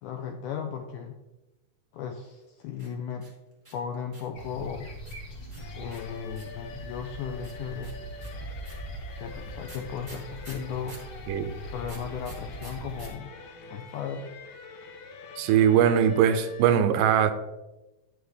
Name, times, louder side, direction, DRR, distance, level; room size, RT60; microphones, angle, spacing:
voice 1, 0.0-1.2 1.9-3.3 3.7-4.9 5.7-8.0 9.2-11.0 11.7-13.3 13.7-14.3, left 7 dB, 90° left, 5 dB, 1.8 m, -36 dB
sound 1, 2.7-4.4 5.0-6.6 7.4-11.1 11.8-13.1 13.3-13.4 13.6-14.1, right 1 dB, 20° right, 0.8 m, -49 dB
sound 2, 4.3-13.1, equal, 50° left, 1.5 m, -41 dB
sound 3, 5.6-16.6, left 3 dB, 70° left, 2.4 m, -46 dB
voice 2, 15.4-17.3, right 9 dB, 80° right, 10 dB, 2.2 m, -21 dB
9.5 x 6.2 x 3.4 m, 1.0 s
omnidirectional pair, 4.1 m